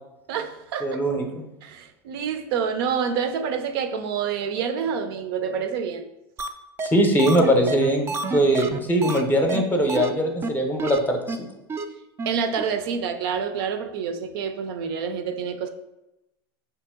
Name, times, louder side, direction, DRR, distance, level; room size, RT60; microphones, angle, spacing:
voice 1, 0.3-1.0 1.6-6.1 12.3-15.7, right 6 dB, 70° right, 9 dB, 0.6 m, -27 dB
voice 2, 0.8-1.4 6.8-11.4, right 1 dB, 15° left, 3 dB, 0.7 m, -21 dB
sound 1, 6.4-6.5 6.8-6.9 7.2-9.2 9.5-9.6 9.9-10.1 10.4-10.5 10.8-11.0 11.3-11.4 11.7-11.8 12.2-12.3 12.6-12.7, right 4 dB, 20° right, 0.4 m, -28 dB
5.0 x 2.9 x 3.6 m, 0.95 s
hypercardioid pair, 110°, 13 cm